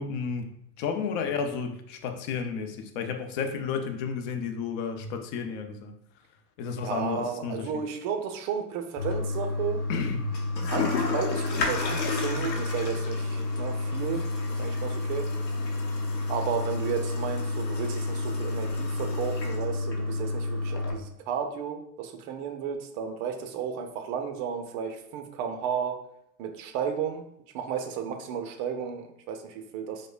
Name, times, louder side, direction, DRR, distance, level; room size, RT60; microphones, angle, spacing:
voice 1, 0.0-6.0 6.6-7.8 9.9-10.3, left 6 dB, 40° left, 6 dB, 0.5 m, -32 dB
voice 2, 6.8-9.8 10.7-15.3 16.3-26.0 26.4-27.2 27.5-30.1, right 7 dB, 40° right, 6 dB, 0.5 m, -33 dB
Toilet flush, 9.0-20.9, left 2 dB, 85° left, 0.8 m, -29 dB
4.7 x 2.2 x 2.4 m, 0.76 s
hypercardioid pair, 95°, 49 cm